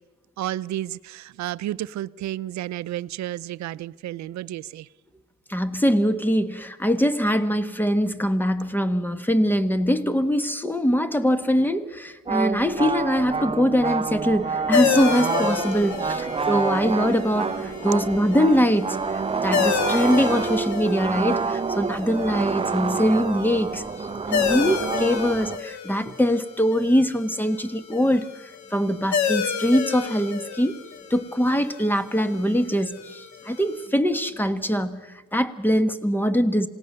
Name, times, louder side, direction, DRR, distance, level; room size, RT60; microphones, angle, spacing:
voice 1, 0.4-4.9, right 13 dB, 65° right, 0.6 m, -31 dB
voice 2, 5.5-19.0 19.4-30.8 31.1-35.0 35.3-36.7, equal, 5° left, 1.3 m, -23 dB
sound 1, 12.3-25.6, right 5 dB, 20° right, 0.6 m, -28 dB
Bowed string instrument, 14.4-19.2, equal, 55° left, 3.4 m, -43 dB
sound 2, 14.7-33.9, left 7 dB, 70° left, 1.6 m, -31 dB
27.0 x 18.0 x 6.7 m
cardioid pair, 110°, 30 cm